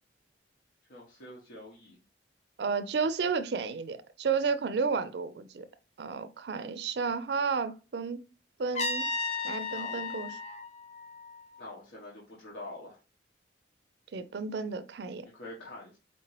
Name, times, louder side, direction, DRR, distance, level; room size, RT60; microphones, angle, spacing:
voice 1, 0.9-2.0 9.7-10.0 11.6-13.0 15.3-16.0, left 1 dB, 75° left, 1.0 m, -45 dB
voice 2, 2.6-5.7 6.0-8.2 8.6-9.1 9.4-10.4 14.1-15.3, right 5 dB, 60° right, 0.4 m, -32 dB
Trumpet, 8.8-11.7, left 3 dB, 35° left, 0.5 m, -35 dB
4.3 x 2.9 x 3.0 m
head